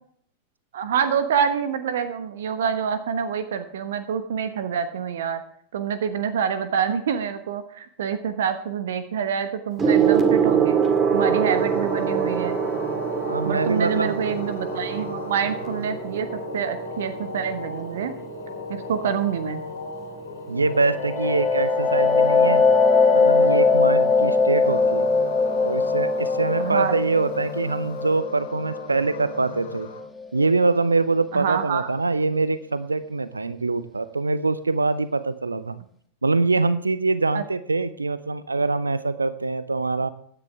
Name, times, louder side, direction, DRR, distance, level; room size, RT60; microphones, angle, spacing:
voice 1, 0.7-5.4 5.7-10.8 11.1-12.6 13.5-18.1 18.7-19.6 26.6-27.0 31.3-31.9 37.3-37.4, right 7 dB, 60° right, 11 dB, 1.1 m, -26 dB
Gong, 9.8-19.5 20.5-20.8, right 7 dB, 25° right, 2.2 m, -25 dB
sound 1, 11.1-30.0, left 3 dB, 70° left, 2.7 m, -36 dB
voice 2, 13.2-14.3 20.5-22.6 23.1-25.1 25.6-29.9 30.3-35.8 36.2-40.1, right 3 dB, 80° right, 15 dB, 0.6 m, -24 dB
sound 2, 20.8-30.3, left 4 dB, 10° left, 1.9 m, -21 dB
16.0 x 10.0 x 3.5 m, 0.63 s
figure-of-eight pair, 90°, 0 cm